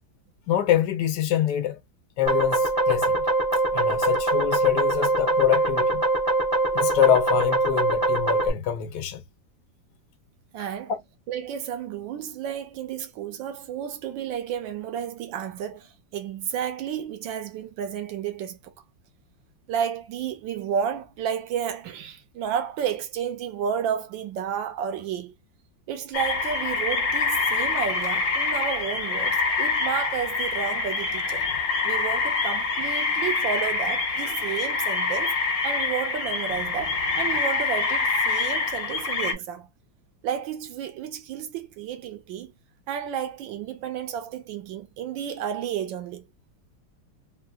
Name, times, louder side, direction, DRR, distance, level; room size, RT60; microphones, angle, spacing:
voice 1, 0.5-1.8 2.2-3.3 3.7-6.0 6.7-9.2 10.6-10.7, left 11 dB, 75° left, 1.1 m, -25 dB
sound 1, 2.3-8.5, right 2 dB, 35° right, 0.3 m, -23 dB
voice 2, 10.5-10.9 11.3-18.7 19.7-25.3 25.9-31.5 31.8-35.3 35.6-39.7 40.2-42.5 42.9-46.2, right 8 dB, 75° right, 1.3 m, -31 dB
sound 2, 26.1-39.3, left 4 dB, 45° left, 1.4 m, -26 dB
3.6 x 2.3 x 2.3 m
omnidirectional pair, 2.2 m